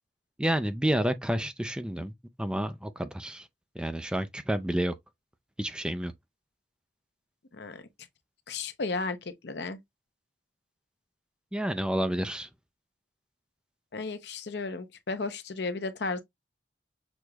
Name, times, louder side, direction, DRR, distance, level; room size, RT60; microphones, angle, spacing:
voice 1, 0.4-2.1 2.4-3.5 3.8-4.9 5.6-6.1 11.5-12.5, right 1 dB, 5° right, 0.3 m, -29 dB
voice 2, 8.5-9.2 9.4-9.8 13.9-16.2, left 3 dB, 60° left, 0.7 m, -33 dB
6.2 x 2.9 x 2.3 m
head